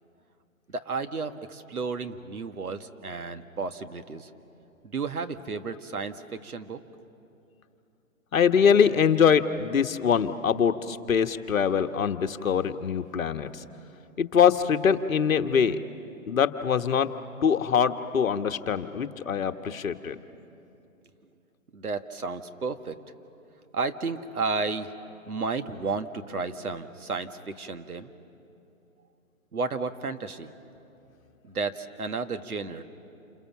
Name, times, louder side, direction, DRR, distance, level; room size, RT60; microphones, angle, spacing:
voice 1, 0.7-4.3 4.8-6.8 21.7-23.0 23.7-24.9 25.3-28.1 29.5-30.5 31.4-32.8, right 4 dB, 90° right, 8 dB, 1.6 m, -32 dB
voice 2, 8.3-13.5 14.2-15.8 16.3-17.1 17.4-20.1, left 7 dB, 65° left, 8 dB, 1.3 m, -23 dB
28.5 x 27.5 x 7.3 m, 2.8 s
hypercardioid pair, 150°, 43 cm